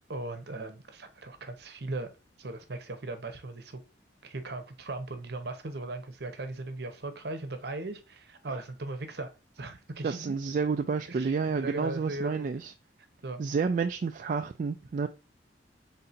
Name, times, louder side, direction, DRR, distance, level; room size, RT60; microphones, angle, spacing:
voice 1, 0.1-2.1 2.4-3.8 4.2-9.3 9.6-10.4 11.1-12.5 13.2-13.4, right 2 dB, 65° right, 0.9 m, -38 dB
voice 2, 10.0-12.7 13.4-15.1, right 5 dB, 45° right, 0.3 m, -30 dB
4.3 x 3.8 x 2.5 m
head